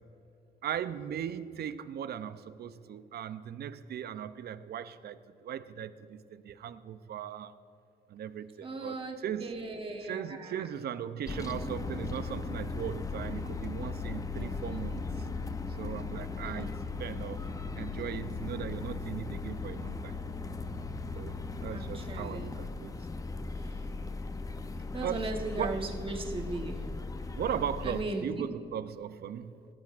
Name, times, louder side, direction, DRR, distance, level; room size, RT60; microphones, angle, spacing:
voice 1, 0.6-7.5 8.1-9.5 10.0-15.3 15.8-16.7 17.0-17.4 17.8-20.2 21.1-21.3 21.6-23.0 25.0-25.8 27.4-29.5, right 9 dB, 60° right, 13 dB, 0.5 m, -38 dB
voice 2, 8.6-10.6 14.3-14.6 16.4-16.7 21.7-22.5 24.9-26.8 27.8-28.4, right 2 dB, 30° right, 2 dB, 1.1 m, -37 dB
sound 1, 11.3-28.0, left 4 dB, 20° left, 0.5 m, -37 dB
16.5 x 10.0 x 2.5 m, 2.7 s
cardioid pair, 115°, 19 cm